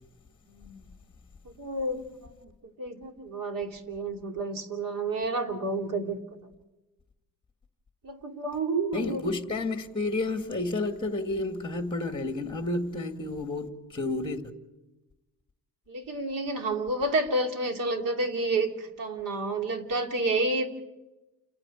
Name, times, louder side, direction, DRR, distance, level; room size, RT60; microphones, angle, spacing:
voice 1, 0.5-0.9 1.4-2.3 2.6-6.2 8.0-9.2 15.9-20.7, right 2 dB, 65° right, 2.9 m, -30 dB
voice 2, 8.9-14.4, left 2 dB, 15° left, 2.0 m, -31 dB
29.0 x 9.8 x 9.8 m
cardioid pair, 115°, 35 cm